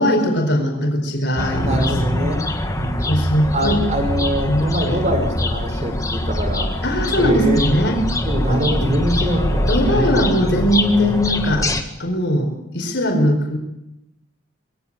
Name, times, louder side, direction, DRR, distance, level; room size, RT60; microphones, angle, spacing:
voice 1, 0.0-1.9 3.1-3.8 4.4-5.0 6.8-8.0 8.5-8.6 9.7-11.7 12.0-13.6, equal, 60° left, 4 dB, 4.7 m, -20 dB
sound 1, 1.4-11.8, left 1 dB, 15° left, 1.7 m, -23 dB
voice 2, 1.6-3.1 3.5-6.8 7.2-7.9 8.3-10.5, equal, 35° right, 3 dB, 6.0 m, -23 dB
21.5 x 16.5 x 8.9 m, 0.88 s
head